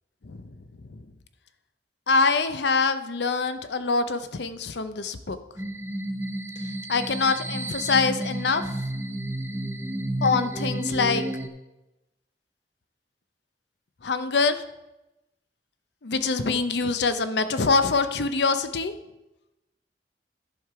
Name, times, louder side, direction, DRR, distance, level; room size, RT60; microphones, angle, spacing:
voice 1, 2.1-5.4 6.9-8.7 10.2-11.2 14.0-14.6 16.0-18.9, left 4 dB, 75° left, 10 dB, 0.7 m, -24 dB
sound 1, 5.6-11.5, right 1 dB, 15° right, 0.6 m, -31 dB
10.5 x 6.6 x 4.7 m, 0.95 s
head